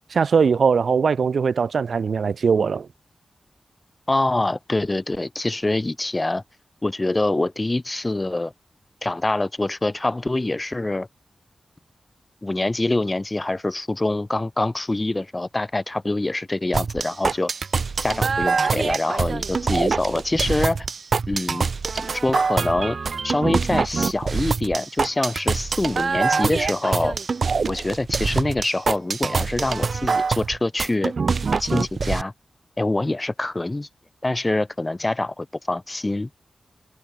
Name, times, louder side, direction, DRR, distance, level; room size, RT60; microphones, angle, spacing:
voice 1, 0.1-2.9, right 5 dB, 80° right, 2.6 m, -20 dB
voice 2, 4.1-6.4 6.8-8.5 9.0-11.1 12.4-17.5 18.0-20.9 21.3-21.7 22.0-23.0 23.2-27.2 27.7-31.1 31.6-32.3 32.8-33.9 34.2-36.3, left 2 dB, 25° left, 7.6 m, -25 dB
sound 1, 16.7-32.2, right 5 dB, 65° right, 2.6 m, -24 dB
wide cardioid pair, 100°, 0 cm